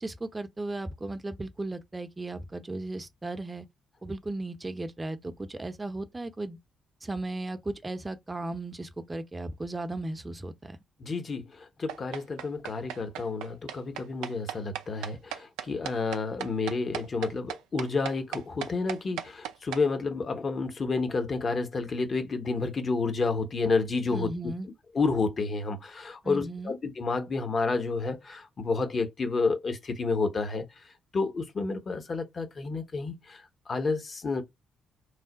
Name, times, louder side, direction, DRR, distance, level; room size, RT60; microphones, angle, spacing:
voice 1, 0.0-3.7 4.0-6.6 7.0-10.8 24.1-24.7 26.2-26.7, right 2 dB, 25° right, 0.7 m, -36 dB
voice 2, 11.0-24.3 24.9-30.6 31.1-33.4 33.7-34.4, left 4 dB, 45° left, 0.9 m, -30 dB
sound 1, 11.9-19.8, right 11 dB, 70° right, 0.3 m, -36 dB
3.2 x 2.1 x 3.9 m
figure-of-eight pair, 40°, 0 cm